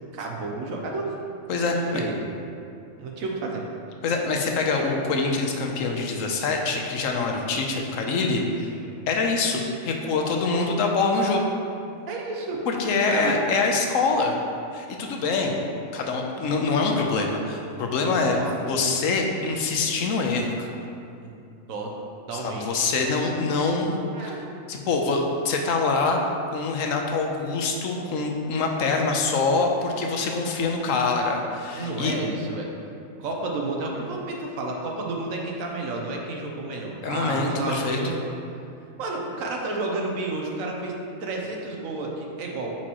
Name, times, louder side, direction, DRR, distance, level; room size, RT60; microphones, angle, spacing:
voice 1, 0.1-1.1 1.7-2.1 3.0-3.6 8.7-9.0 12.1-12.6 13.1-13.4 18.1-18.6 21.2-21.3 21.7-21.9 22.3-22.9 24.1-24.4 31.7-32.7 33.2-38.4 39.0-40.9 41.2-42.7, right 2 dB, 85° right, 0 dB, 1.2 m, -31 dB
voice 2, 1.5-2.0 4.0-8.4 9.1-11.4 12.7-14.4 14.7-15.6 15.9-18.4 18.7-20.7 22.3-24.4 24.7-26.2 26.5-32.1 37.0-38.0, left 4 dB, 75° left, 2 dB, 1.1 m, -25 dB
8.7 x 4.4 x 3.0 m, 2.5 s
omnidirectional pair, 1.4 m